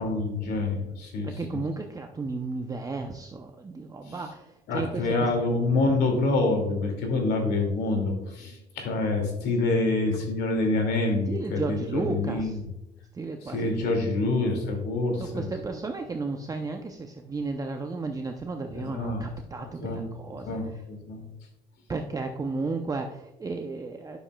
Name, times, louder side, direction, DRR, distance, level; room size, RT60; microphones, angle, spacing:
voice 1, 0.0-1.6 4.1-4.2 4.7-12.6 13.4-15.5 18.7-19.2 19.6-20.1 20.4-21.2, left 2 dB, 75° left, 3 dB, 2.3 m, -27 dB
voice 2, 1.2-5.5 11.3-12.6 13.1-13.7 14.0-14.1 15.2-20.6 21.9-24.2, right 3 dB, 20° right, 4 dB, 0.5 m, -33 dB
10.0 x 6.9 x 2.2 m, 0.93 s
cardioid pair, 110°, 17 cm